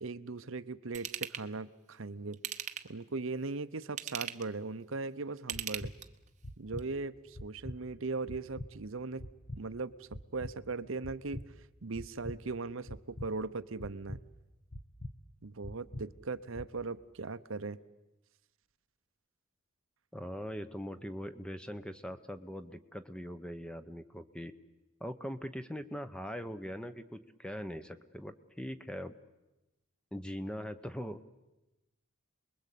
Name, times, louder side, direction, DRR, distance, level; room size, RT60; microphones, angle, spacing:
voice 1, 0.0-2.4 2.9-5.9 6.6-9.2 9.5-14.2 15.4-17.8, right 3 dB, 65° right, 13 dB, 0.8 m, -39 dB
Ratchet pawl / Tools, 0.9-1.5 2.3-3.0 3.8-4.5 5.4-6.3 6.8-6.9, right 9 dB, 35° right, 0.9 m, -39 dB
sound 1, 5.5-5.9 6.4-6.8 7.3-7.8 8.3-8.7 9.2-9.6 10.1-10.5 11.0-11.4 11.9-12.4 12.9-13.3 13.8-14.2 14.7-15.1 15.6-16.0 16.5-16.7, left 1 dB, 35° left, 1.0 m, -42 dB
voice 2, 20.1-24.5 25.0-29.1 30.1-31.2, equal, 5° left, 10 dB, 0.9 m, -41 dB
28.5 x 21.5 x 8.5 m, 1.0 s
head